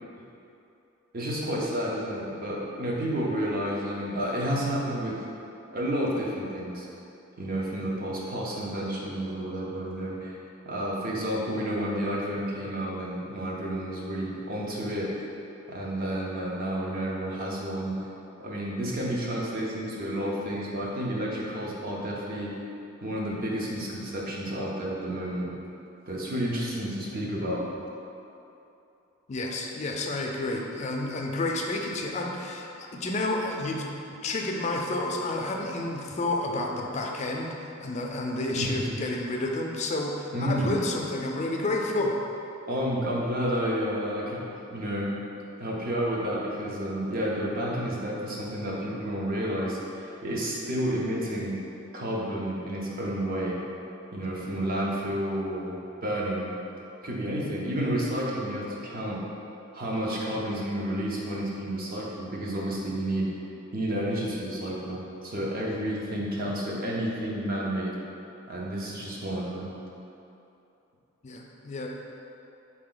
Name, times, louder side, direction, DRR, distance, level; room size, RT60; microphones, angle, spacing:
voice 1, 1.1-5.2 5.7-6.9 7.4-10.3 10.7-15.3 15.7-18.0 18.4-22.5 23.0-25.5 26.1-27.7 38.6-39.0 40.3-40.8 42.7-45.1 45.6-51.6 51.9-53.6 54.1-55.8 56.0-56.5 57.0-59.2 59.7-63.3 63.7-68.0 68.5-69.7, equal, 45° right, -3 dB, 0.7 m, -30 dB
voice 2, 29.3-33.9 34.1-37.5 37.8-42.1 71.2-71.9, left 2 dB, 35° left, 1 dB, 0.4 m, -30 dB
4.2 x 2.9 x 3.8 m, 2.8 s
head